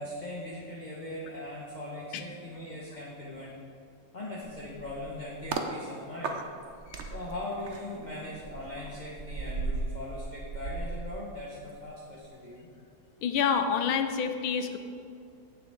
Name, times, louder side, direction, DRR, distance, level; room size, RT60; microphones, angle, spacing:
voice 1, 0.0-3.5 4.1-6.4 7.1-12.7, left 1 dB, 25° left, -5 dB, 1.1 m, -40 dB
sound 1, 4.4-5.7 6.2-11.8 12.1-12.4, right 3 dB, 65° right, 0.7 m, -37 dB
voice 2, 13.2-14.8, left 6 dB, 80° left, 8 dB, 1.5 m, -28 dB
15.5 x 6.8 x 3.7 m, 2.4 s
omnidirectional pair, 2.2 m